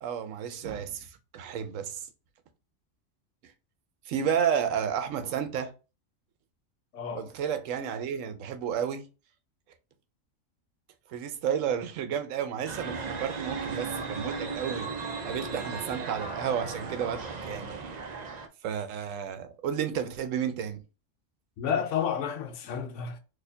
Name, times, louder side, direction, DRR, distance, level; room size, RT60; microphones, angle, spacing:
voice 1, 0.0-2.1 4.1-5.7 7.1-9.0 11.1-14.9 15.2-17.7 18.6-20.8, right 8 dB, 80° right, 1.0 m, -31 dB
voice 2, 6.9-7.3 21.6-23.2, left 7 dB, 75° left, 1.0 m, -31 dB
sound 1, 12.7-18.5, right 4 dB, 50° right, 0.5 m, -36 dB
4.1 x 2.8 x 2.7 m
omnidirectional pair, 1.3 m